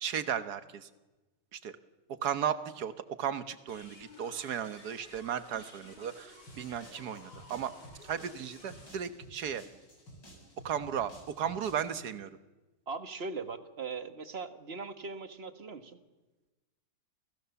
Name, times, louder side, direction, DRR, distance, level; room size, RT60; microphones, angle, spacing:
voice 1, 0.0-0.9 1.5-1.8 2.1-7.7 8.0-9.6 10.6-12.3, right 8 dB, 65° right, 12 dB, 1.7 m, -35 dB
sound 1, 3.7-8.9, left 2 dB, 70° left, 6.5 m, -54 dB
sound 2, 6.5-11.9, equal, 85° left, 8.4 m, -53 dB
voice 2, 12.9-16.0, right 4 dB, 35° right, 10 dB, 1.6 m, -40 dB
30.0 x 28.0 x 7.1 m, 1.2 s
omnidirectional pair, 1.9 m